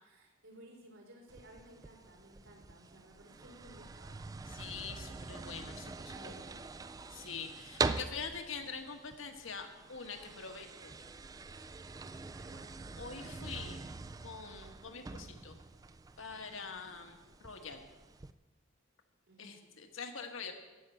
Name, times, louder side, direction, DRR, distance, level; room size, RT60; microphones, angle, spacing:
voice 1, 0.0-4.2 6.1-6.8 12.3-12.7 19.3-19.6, right 1 dB, 80° right, -1 dB, 4.1 m, -57 dB
sound 1, 1.3-18.3, right 4 dB, 20° right, 0.3 m, -44 dB
voice 2, 4.5-6.3 7.1-10.9 13.0-13.8 14.2-15.6 16.2-17.8 19.4-20.5, left 5 dB, 75° left, 5 dB, 1.5 m, -44 dB
15.0 x 6.0 x 9.0 m, 1.2 s
head